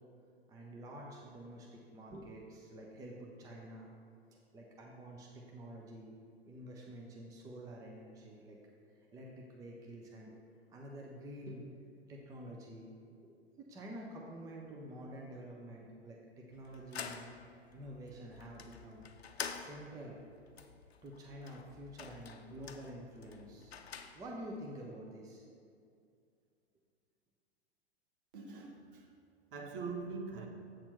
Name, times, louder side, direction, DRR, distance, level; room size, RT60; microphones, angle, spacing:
voice 1, 0.5-3.9 4.5-6.2 6.5-8.6 9.0-10.3 10.7-11.7 12.1-19.0 19.6-20.2 21.0-23.8 24.1-25.5, right 1 dB, 10° right, -1 dB, 0.6 m, -49 dB
sound 1, 16.5-24.6, left 6 dB, 70° left, 0.6 m, -48 dB
voice 2, 28.3-29.1 29.5-30.5, right 4 dB, 50° right, 2 dB, 1.1 m, -42 dB
7.7 x 4.3 x 5.6 m, 2.4 s
figure-of-eight pair, 100°, 33 cm